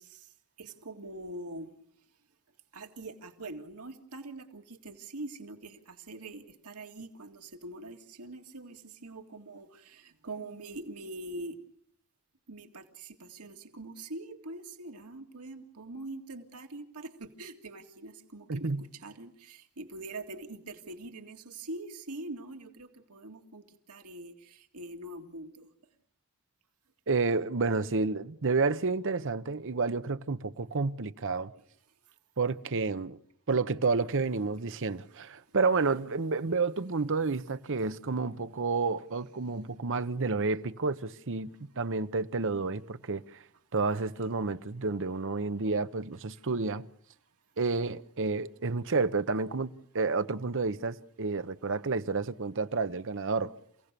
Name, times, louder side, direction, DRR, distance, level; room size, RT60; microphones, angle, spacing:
voice 1, 0.0-1.7 2.7-11.6 12.5-25.7, right 2 dB, 85° right, 2.2 m, -44 dB
voice 2, 18.5-18.8 27.1-31.5 32.4-33.2 33.5-43.4 43.7-46.9 47.6-53.5, right 4 dB, 60° right, 0.9 m, -30 dB
29.0 x 17.0 x 6.8 m
head